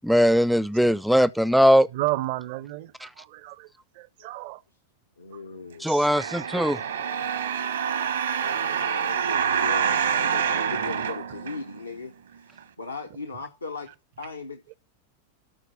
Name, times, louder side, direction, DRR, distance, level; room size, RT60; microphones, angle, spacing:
voice 1, 0.0-1.9 5.8-6.8, equal, ahead, 0.5 m, -20 dB
voice 2, 1.9-3.7 4.0-4.6 5.9-6.1 8.7-8.9, right 17 dB, 50° right, 0.6 m, -32 dB
voice 3, 5.2-5.9 8.8-13.9 14.2-14.8, left 4 dB, 80° left, 0.9 m, -38 dB
sound 1, 6.0-12.0 12.6-12.7, right 7 dB, 70° right, 1.1 m, -26 dB
13.0 x 4.6 x 6.2 m
figure-of-eight pair, 90°, 0 cm